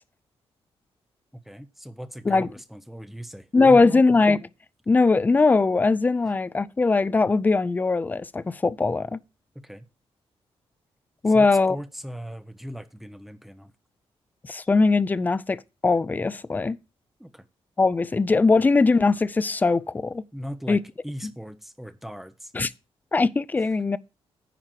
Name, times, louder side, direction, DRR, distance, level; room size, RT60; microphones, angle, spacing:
voice 1, 1.5-4.0 9.5-9.9 11.3-13.7 17.2-17.4 20.3-22.5, equal, ahead, 0.7 m, -38 dB
voice 2, 3.5-4.4 4.9-9.2 11.2-11.8 14.5-16.8 17.8-20.2 20.7-20.8 21.2-21.3 22.5-22.7 23.1-24.0, left 3 dB, 15° left, 0.4 m, -20 dB
10.0 x 4.5 x 7.5 m
wide cardioid pair, 155°, 10 cm